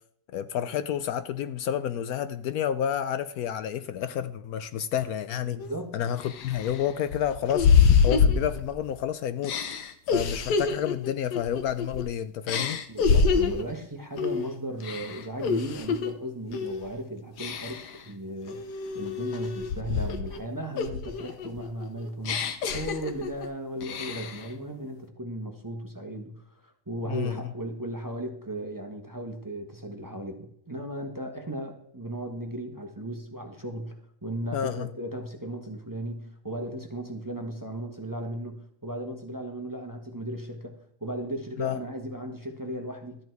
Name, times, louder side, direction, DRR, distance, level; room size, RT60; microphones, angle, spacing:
voice 1, 0.3-5.6 5.9-9.6 10.1-12.8 27.1-27.4 34.5-34.9 41.6-41.8, left 9 dB, 70° left, 13 dB, 1.0 m, -30 dB
voice 2, 5.5-6.0 12.9-18.6 18.9-43.2, right 1 dB, 15° right, 4 dB, 1.1 m, -36 dB
sound 1, 5.6-5.7 6.2-9.0 9.4-12.1 12.5-13.7 14.2-14.5 14.8-16.1 16.5-16.9 17.4-18.0 18.5-20.4 20.8-23.5 23.8-24.5, left 6 dB, 90° left, 1.6 m, -26 dB
13.0 x 8.9 x 4.6 m, 0.67 s
omnidirectional pair, 1.7 m